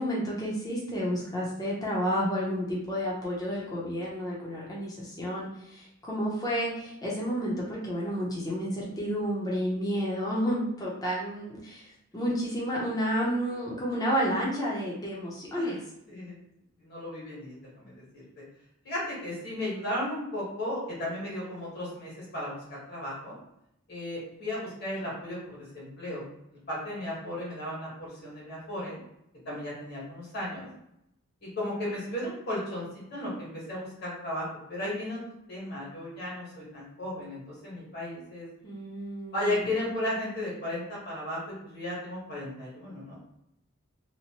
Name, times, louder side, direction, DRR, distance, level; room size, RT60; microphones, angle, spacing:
voice 1, 0.0-15.8 38.6-39.7, equal, 15° left, -5 dB, 0.7 m, -31 dB
voice 2, 16.1-16.4 16.8-18.0 18.4-18.5 18.8-23.3 23.9-26.2 26.5-29.0 29.4-30.7 31.4-35.2 35.5-38.5 39.3-41.4 41.6-43.2, left 1 dB, 50° left, -6 dB, 1.4 m, -35 dB
2.8 x 2.1 x 2.9 m, 0.79 s
head